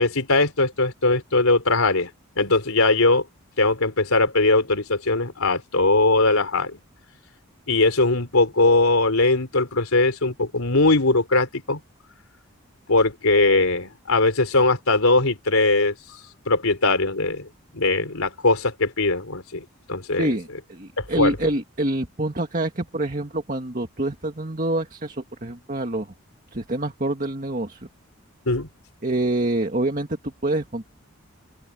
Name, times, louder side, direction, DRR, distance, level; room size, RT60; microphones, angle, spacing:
voice 1, 0.0-2.1 2.4-3.2 3.6-6.8 7.7-11.8 12.9-15.9 16.5-17.5 17.7-20.2 21.0-21.3 28.5-28.7, left 2 dB, 80° left, 3.4 m, -20 dB
voice 2, 20.2-26.1 26.5-27.9 29.0-30.9, right 1 dB, 40° right, 1.8 m, -26 dB
open air
head